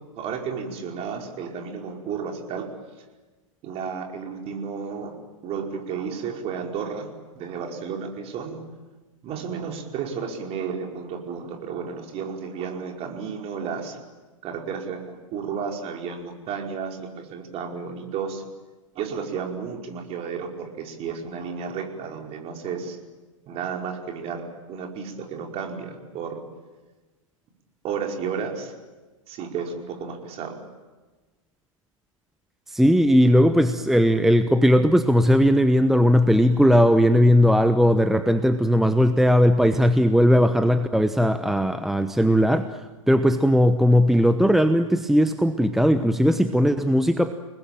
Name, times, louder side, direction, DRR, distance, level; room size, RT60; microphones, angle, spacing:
voice 1, 0.2-2.7 3.6-5.1 5.4-7.1 7.3-8.6 9.2-14.0 14.4-18.4 18.9-23.0 23.5-26.4 27.8-28.7 29.3-30.6, right 6 dB, 35° right, 2 dB, 5.0 m, -32 dB
voice 2, 32.7-42.8 43.1-47.3, equal, ahead, 9 dB, 1.0 m, -18 dB
29.5 x 20.5 x 9.1 m, 1.2 s
figure-of-eight pair, 100°, 18 cm